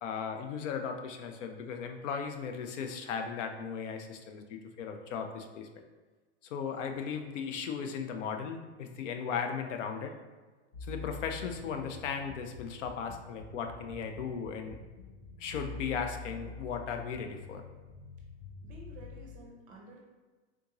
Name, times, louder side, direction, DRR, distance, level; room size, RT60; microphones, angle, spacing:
voice 1, 0.0-5.8 6.4-10.1 10.8-14.8 15.4-17.6, left 6 dB, 80° left, 5 dB, 0.6 m, -37 dB
sound 1, 10.7-19.4, left 3 dB, 35° left, 0.5 m, -46 dB
voice 2, 18.6-20.0, right 3 dB, 25° right, -1 dB, 0.5 m, -51 dB
3.6 x 2.5 x 2.9 m, 1.3 s
supercardioid pair, 145°, 36 cm